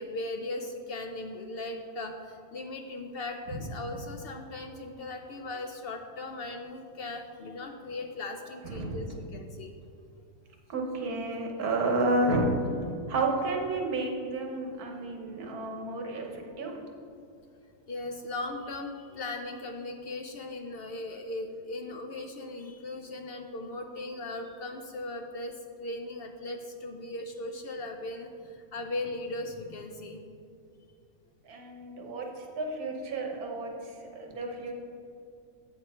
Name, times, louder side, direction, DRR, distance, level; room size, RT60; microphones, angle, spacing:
voice 1, 0.0-9.7 16.7-16.8 17.9-30.2, left 2 dB, 70° left, 4 dB, 0.5 m, -38 dB
voice 2, 8.6-9.0 10.7-12.5 13.1-16.8 31.4-34.7, right 2 dB, 80° right, 1 dB, 1.5 m, -31 dB
7.8 x 6.7 x 4.3 m, 2.4 s
omnidirectional pair, 1.6 m